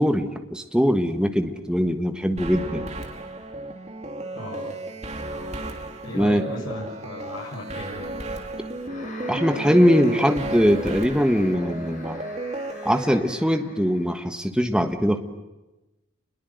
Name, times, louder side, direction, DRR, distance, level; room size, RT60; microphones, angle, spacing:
voice 1, 0.0-2.9 6.1-6.5 9.3-12.2 12.8-15.2, equal, 5° right, 6 dB, 1.5 m, -21 dB
sound 1, 2.4-13.0, right 2 dB, 35° right, 2.7 m, -34 dB
voice 2, 4.3-4.8 6.0-8.1, left 1 dB, 75° left, -4 dB, 7.5 m, -36 dB
sound 2, 8.8-14.2, left 2 dB, 40° left, 4.9 m, -43 dB
28.0 x 21.5 x 8.0 m, 1.0 s
head